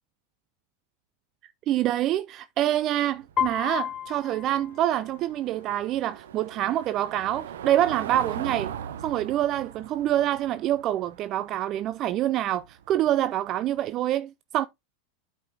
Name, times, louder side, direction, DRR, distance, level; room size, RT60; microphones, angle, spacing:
voice 1, 1.4-8.7 9.0-14.6, right 12 dB, 45° right, 0.4 m, -26 dB
Car passing by / Engine, 3.1-13.8, right 9 dB, 75° right, 0.9 m, -40 dB
Piano, 3.4-5.4, left 10 dB, 30° left, 0.5 m, -32 dB
8.7 x 5.1 x 3.5 m
hypercardioid pair, 95°, 0 cm